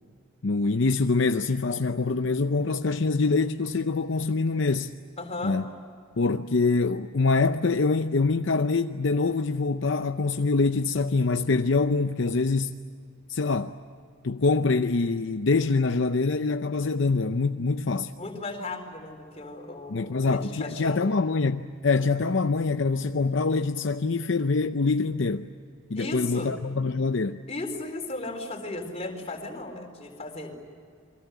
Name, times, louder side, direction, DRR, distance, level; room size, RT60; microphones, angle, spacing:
voice 1, 0.4-4.9 5.4-5.7 6.2-12.8 13.3-13.7 14.2-18.1 19.9-25.5 25.9-27.4, left 3 dB, 65° left, 0.7 m, -25 dB
voice 2, 5.2-5.6 18.2-21.0 25.9-26.5 27.5-30.5, left 2 dB, 30° left, 4.3 m, -36 dB
29.5 x 23.5 x 8.3 m
head